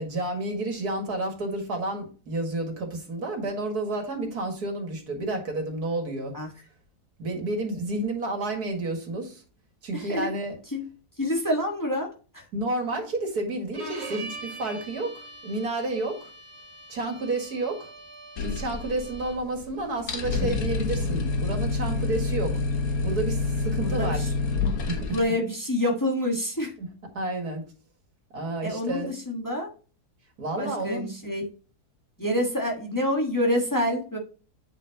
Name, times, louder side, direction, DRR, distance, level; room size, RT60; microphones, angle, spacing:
voice 1, 0.0-6.4 7.2-9.4 9.8-10.6 12.5-16.3 16.9-17.9 18.4-22.6 23.0-24.3 24.9-25.2 26.8-26.9 27.1-27.6 28.3-29.1 30.4-31.1, right 2 dB, 75° right, 3 dB, 2.4 m, -30 dB
voice 2, 9.9-10.3 10.7-10.8 11.2-12.4 23.8-24.3 25.1-26.7 28.6-29.7 30.6-31.5 32.2-34.2, left 1 dB, 15° left, 0 dB, 1.5 m, -27 dB
Bowed string instrument, 13.7-19.6, right 2 dB, 45° right, 2.0 m, -43 dB
sound 1, 18.4-19.4 19.6-19.7 20.0-25.2, left 3 dB, 65° left, 1.6 m, -27 dB
8.8 x 5.6 x 2.9 m, 0.37 s
omnidirectional pair, 1.6 m